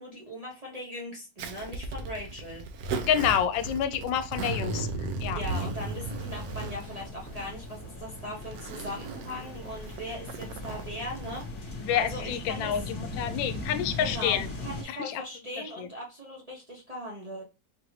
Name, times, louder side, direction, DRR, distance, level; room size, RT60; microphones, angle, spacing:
voice 1, 0.0-2.6 5.3-12.7 14.0-17.4, equal, 40° right, -4 dB, 0.5 m, -39 dB
Zipper (clothing), 1.4-11.5, right 3 dB, 70° right, 0.9 m, -36 dB
voice 2, 3.1-5.4 11.8-14.5 14.9-15.2 15.8-15.9, left 9 dB, 80° left, 10 dB, 1.3 m, -28 dB
sound 1, 5.8-14.8, left 2 dB, 40° left, 1.3 m, -39 dB
4.5 x 2.6 x 3.2 m, 0.31 s
omnidirectional pair, 2.1 m